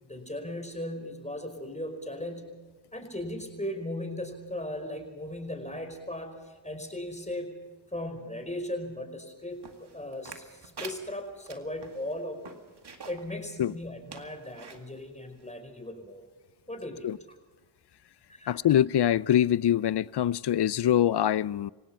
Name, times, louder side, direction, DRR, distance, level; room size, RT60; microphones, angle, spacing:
voice 1, 0.0-2.5 2.9-7.6 7.9-12.5 13.1-16.2 16.7-17.1 18.3-18.6, left 1 dB, 15° left, 4.9 m, -37 dB
sound 1, 9.6-13.3 13.7-13.8 14.1-14.8 15.4-15.5, right 5 dB, 60° right, 2.1 m, -45 dB
voice 2, 18.5-21.7, left 11 dB, 60° left, 0.6 m, -24 dB
28.0 x 16.5 x 5.7 m
cardioid pair, 45°, 46 cm